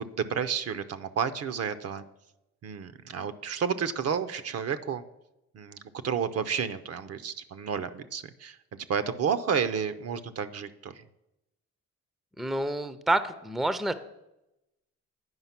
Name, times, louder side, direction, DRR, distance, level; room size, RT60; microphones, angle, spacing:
voice 1, 0.1-2.0 2.6-5.0 5.5-8.6 8.9-11.0, right 7 dB, 55° right, 11 dB, 0.6 m, -31 dB
voice 2, 12.4-13.9, right 1 dB, ahead, 13 dB, 0.5 m, -28 dB
9.6 x 5.0 x 5.8 m, 0.90 s
cardioid pair, 90°, 30 cm